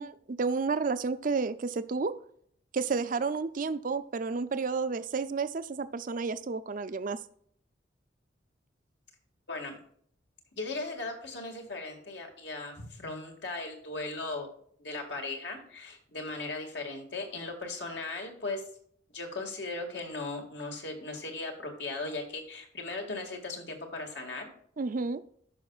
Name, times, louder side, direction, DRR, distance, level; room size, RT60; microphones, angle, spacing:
voice 1, 0.0-2.2 2.7-7.2 24.8-25.2, right 4 dB, 45° right, 12 dB, 0.5 m, -31 dB
voice 2, 10.6-14.5 14.8-18.6 19.1-24.5, left 3 dB, 65° left, 2 dB, 1.9 m, -37 dB
14.0 x 5.9 x 2.4 m, 0.63 s
head